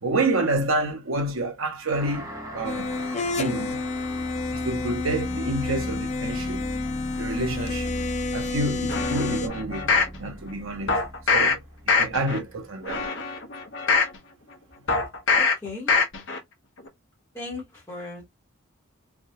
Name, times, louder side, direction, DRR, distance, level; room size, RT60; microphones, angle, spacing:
voice 1, 0.0-2.9 3.4-3.8 4.5-6.7 7.2-7.9 8.3-9.9 10.2-11.0 11.3-11.6 11.8-13.1, right 2 dB, 70° right, 0.9 m, -28 dB
sound 1, 1.9-12.9, equal, 15° right, 0.8 m, -37 dB
sound 2, 2.6-9.5, left 3 dB, 30° left, 0.5 m, -30 dB
sound 3, 8.9-10.2 10.9-11.5 11.9-12.4 12.8-14.2 14.9-15.5 15.9-16.4 16.8-16.9, left 4 dB, 55° left, 0.9 m, -23 dB
voice 2, 15.3-15.9 17.3-18.3, left 3 dB, 15° left, 1.1 m, -37 dB
3.5 x 2.3 x 2.7 m
head